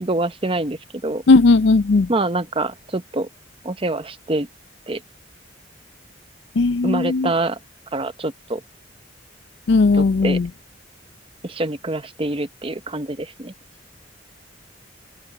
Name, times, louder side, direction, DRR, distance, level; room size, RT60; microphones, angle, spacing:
voice 1, 0.0-1.2 2.1-3.3 3.6-4.5 4.9-5.0 6.8-7.6 7.9-8.6 9.9-10.4 11.4-13.5, right 2 dB, 30° right, 0.9 m, -25 dB
voice 2, 1.3-2.1 6.6-7.3 9.7-10.5, left 3 dB, 65° left, 0.5 m, -16 dB
open air
head